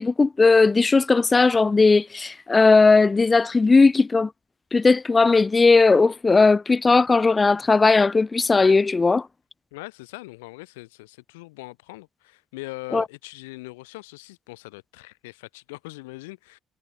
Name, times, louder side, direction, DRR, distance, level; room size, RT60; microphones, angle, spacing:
voice 1, 0.0-4.3 4.7-9.3 12.9-13.0, left 4 dB, 30° left, 0.4 m, -17 dB
voice 2, 9.7-16.6, left 23 dB, 75° left, 2.9 m, -41 dB
figure-of-eight pair, 50°, 0 cm